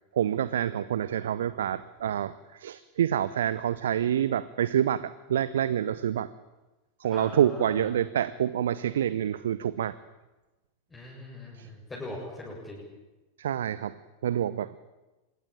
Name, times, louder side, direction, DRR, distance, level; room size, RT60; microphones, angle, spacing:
voice 1, 0.1-6.3 7.0-9.9 11.5-11.7 13.4-13.9 14.2-14.7, right 10 dB, 60° right, 16 dB, 0.8 m, -27 dB
voice 2, 7.1-7.9 10.9-12.8, left 2 dB, 15° left, -3 dB, 7.5 m, -40 dB
26.0 x 21.0 x 8.9 m, 1.1 s
figure-of-eight pair, 90°, 0 cm